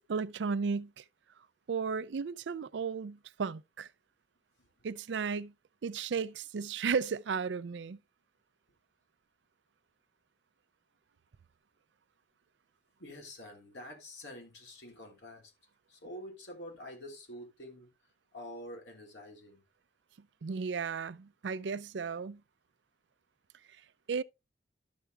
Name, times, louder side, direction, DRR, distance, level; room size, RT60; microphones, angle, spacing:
voice 1, 0.1-1.0 1.7-3.9 4.8-5.5 5.8-8.0 20.4-22.4 24.1-24.2, right 5 dB, 90° right, 0.5 m, -34 dB
voice 2, 13.0-15.5 15.9-17.9 18.3-19.6, left 1 dB, 80° left, 3.3 m, -47 dB
12.5 x 5.9 x 3.3 m
head